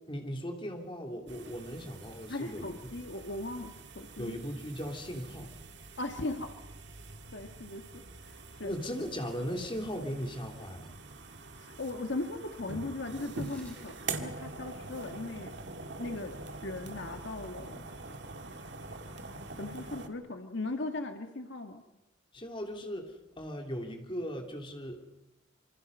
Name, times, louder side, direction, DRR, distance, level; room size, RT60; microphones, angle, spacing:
voice 1, 0.1-2.7 4.2-5.5 8.6-10.9 22.3-25.0, equal, 25° left, 3 dB, 3.2 m, -38 dB
sound 1, 1.3-20.1, right 3 dB, 65° right, 1.9 m, -44 dB
voice 2, 2.3-4.4 6.0-6.5 7.3-8.7 11.6-15.6 16.0-17.8 19.6-21.8, left 2 dB, 70° left, 6 dB, 1.6 m, -38 dB
Tearing, 13.3-19.9, left 1 dB, 10° left, 5.6 m, -64 dB
27.0 x 25.0 x 5.5 m, 0.89 s
head